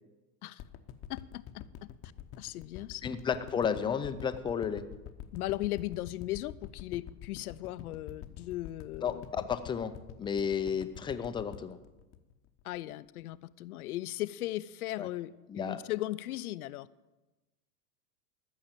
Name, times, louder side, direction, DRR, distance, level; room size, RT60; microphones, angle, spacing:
sound 1, 0.6-12.9 13.3-13.4, left 10 dB, 30° left, 0.8 m, -46 dB
voice 1, 1.1-1.9 2.4-3.1 5.3-9.4 12.6-16.9, left 16 dB, 70° left, 17 dB, 0.6 m, -37 dB
voice 2, 3.0-4.8 9.0-9.9 10.2-11.8 15.0-15.1 15.5-15.8, left 7 dB, 10° left, 10 dB, 0.4 m, -32 dB
14.0 x 6.5 x 7.3 m, 1.1 s
hypercardioid pair, 105°, 47 cm